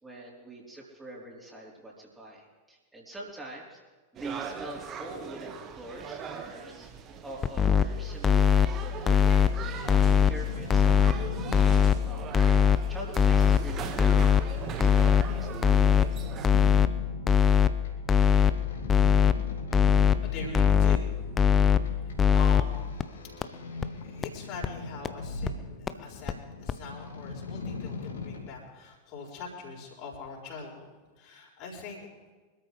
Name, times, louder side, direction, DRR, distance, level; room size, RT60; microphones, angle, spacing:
voice 1, 0.0-3.8 4.1-6.9 7.2-15.9, right 1 dB, 10° right, -4 dB, 4.0 m, -45 dB
sound 1, 4.2-16.5, right 7 dB, 30° right, 1.5 m, -41 dB
sound 2, 7.4-7.8 8.2-8.7 9.1-9.5 9.9-10.3 10.7-11.1 11.5-11.9 12.3-12.8 13.2-13.6 14.0-14.4 14.8-15.2 15.6-16.1 16.4-16.9 17.3-17.7 18.1-18.5 18.9-19.3 19.7-20.2 20.5-21.0 21.4-21.8 22.2-22.6 23.0-23.1 23.4-23.5 23.8-23.9 24.2-24.3 24.6-24.7 25.0-25.1 25.5-25.6 25.9-26.0 26.3-26.4 26.7-26.8, left 7 dB, 20° left, 0.7 m, -20 dB
sound 3, 8.9-28.5, left 4 dB, 65° left, 2.6 m, -41 dB
voice 2, 20.2-22.9 23.2-23.3 24.0-30.9 31.2-32.1, left 4 dB, 40° left, -1 dB, 4.4 m, -43 dB
25.0 x 13.5 x 3.3 m, 1.3 s
figure-of-eight pair, 90°, 0 cm